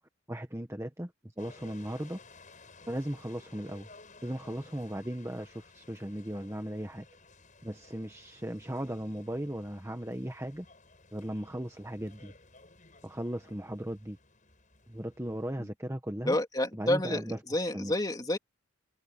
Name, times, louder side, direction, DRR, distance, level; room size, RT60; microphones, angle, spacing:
voice 1, 0.3-1.1 1.4-2.2 2.9-3.9 4.2-7.0 7.6-10.6 11.1-12.3 13.0-14.2 14.9-16.4 16.7-17.9, right 1 dB, 10° right, 1.2 m, -37 dB
sound 1, 1.4-15.5, left 3 dB, 35° left, 7.5 m, -56 dB
voice 2, 16.2-18.4, left 1 dB, 20° left, 3.0 m, -29 dB
head